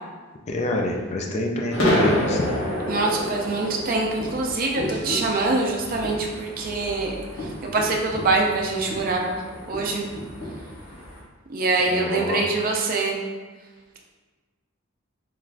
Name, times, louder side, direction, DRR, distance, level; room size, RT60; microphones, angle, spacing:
voice 1, 0.5-2.5 11.9-12.4, left 2 dB, 30° left, 0 dB, 0.3 m, -27 dB
sound 1, 1.7-11.2, equal, 60° left, 0.9 m, -29 dB
voice 2, 2.9-9.4 9.7-10.0 11.5-13.2, right 3 dB, 40° right, 0 dB, 0.5 m, -24 dB
3.5 x 3.1 x 2.4 m, 1.4 s
head